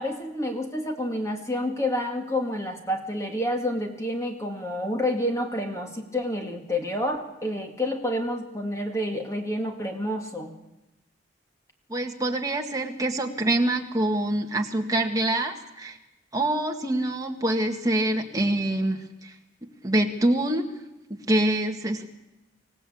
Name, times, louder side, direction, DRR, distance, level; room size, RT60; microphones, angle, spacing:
voice 1, 0.0-10.5, left 1 dB, 15° left, 3 dB, 1.9 m, -29 dB
voice 2, 11.9-16.0 16.3-19.3 19.8-20.7 21.1-22.1, right 1 dB, 20° right, 2 dB, 1.7 m, -25 dB
26.0 x 17.0 x 8.6 m, 0.97 s
head